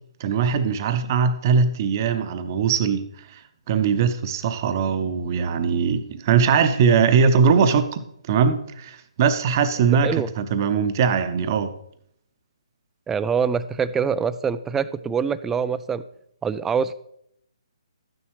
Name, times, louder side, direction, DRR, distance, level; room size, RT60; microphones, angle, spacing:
voice 1, 0.2-3.1 3.3-3.4 3.7-8.0 8.3-11.7, right 6 dB, 35° right, 10 dB, 0.8 m, -20 dB
voice 2, 13.1-16.0 16.4-16.9, right 6 dB, 10° right, 15 dB, 0.3 m, -24 dB
12.5 x 9.8 x 3.2 m, 0.73 s
figure-of-eight pair, 135°, 3 cm